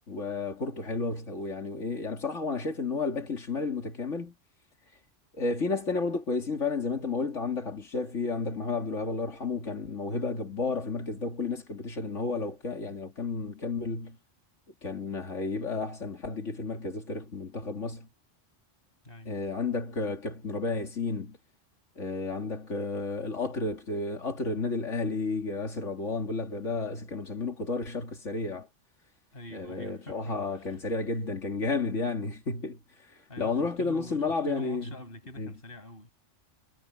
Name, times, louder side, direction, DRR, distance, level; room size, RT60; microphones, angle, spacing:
voice 1, 0.1-4.3 5.3-14.2 14.8-18.1 19.3-21.4 22.0-28.7 29.5-32.8 33.1-34.9 35.4-35.5, left 3 dB, 85° left, 2.9 m, -32 dB
voice 2, 19.0-19.3 29.3-30.8 33.3-36.1, left 1 dB, 50° left, 7.1 m, -45 dB
omnidirectional pair, 1.2 m